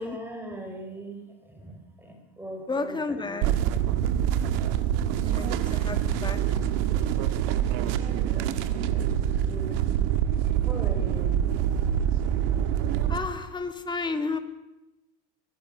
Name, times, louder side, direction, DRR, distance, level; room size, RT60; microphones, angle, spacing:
voice 1, 0.0-3.5 7.8-9.2 9.4-9.8 10.6-11.4, right 1 dB, 5° right, 3 dB, 4.4 m, -40 dB
voice 2, 2.7-3.5 5.2-6.4 13.1-14.4, left 3 dB, 15° left, 7 dB, 2.0 m, -32 dB
sound 1, 3.4-13.2, right 10 dB, 80° right, 1.8 m, -25 dB
23.0 x 18.0 x 6.3 m, 0.98 s
cardioid pair, 140°, 31 cm